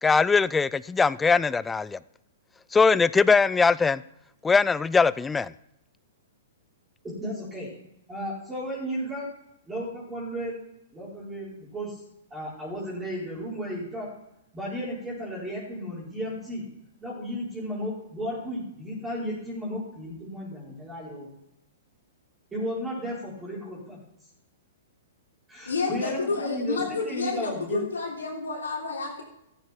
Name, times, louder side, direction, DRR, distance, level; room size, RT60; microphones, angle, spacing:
voice 1, 0.0-2.0 2.7-4.0 4.4-5.5, left 4 dB, 10° left, 0.4 m, -21 dB
voice 2, 7.0-7.7 8.1-9.3 9.7-10.6 10.9-12.0 12.3-14.1 14.5-16.6 17.0-21.3 22.5-24.0 25.5-27.9, equal, 10° right, 4.6 m, -34 dB
voice 3, 25.7-29.2, left 4 dB, 90° left, 3.3 m, -30 dB
14.5 x 8.2 x 4.5 m
hypercardioid pair, 120°, 0 cm